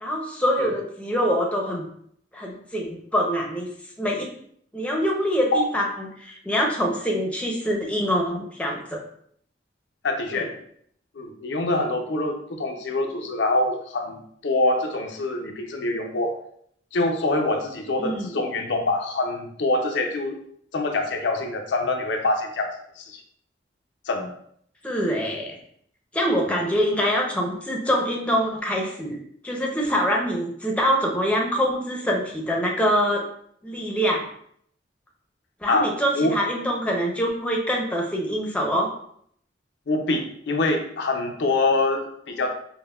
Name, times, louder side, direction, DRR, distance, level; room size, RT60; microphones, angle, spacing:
voice 1, 0.0-1.9 2.3-3.7 4.0-4.3 4.7-9.0 10.3-10.5 18.0-18.4 24.8-25.6 26.1-29.2 29.4-33.2 33.6-34.2 35.6-38.9, equal, 10° left, 0 dB, 0.6 m, -24 dB
voice 2, 10.0-10.5 11.2-16.3 16.9-20.4 20.7-23.2 24.1-24.3 26.4-26.6 35.7-36.4 39.9-42.5, left 2 dB, 85° left, 3 dB, 0.5 m, -25 dB
5.3 x 2.1 x 2.3 m, 0.66 s
head